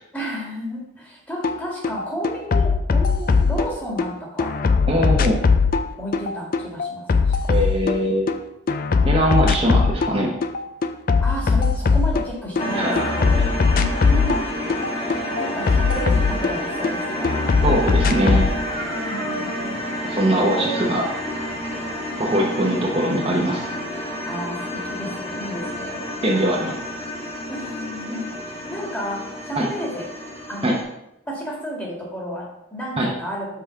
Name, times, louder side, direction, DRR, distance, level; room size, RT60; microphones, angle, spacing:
voice 1, 0.1-4.6 6.0-7.5 11.2-13.3 13.7-14.4 15.1-17.6 18.9-19.8 20.5-20.8 22.6-22.8 24.2-26.1 27.5-30.1 30.5-30.8 31.3-33.5, equal, 10° left, -3 dB, 1.7 m, -32 dB
sound 1, 1.4-1.6 1.8-4.1 4.4-8.4 8.7-10.1 10.4-12.7 13.0-16.9 17.2-18.5, left 4 dB, 45° left, 0.4 m, -20 dB
voice 2, 4.9-5.4 7.5-8.4 9.0-10.3 12.7-13.1 17.6-18.5 20.0-21.0 22.2-23.7 26.2-26.7 29.5-29.7 30.6-30.8 33.0-33.1, right 1 dB, 25° right, -3 dB, 0.8 m, -21 dB
sound 2, 12.6-30.8, equal, 25° left, 1.4 m, -30 dB
Dog, 14.9-19.9, right 5 dB, 65° right, 0.7 m, -37 dB
5.7 x 4.8 x 5.7 m, 0.87 s
head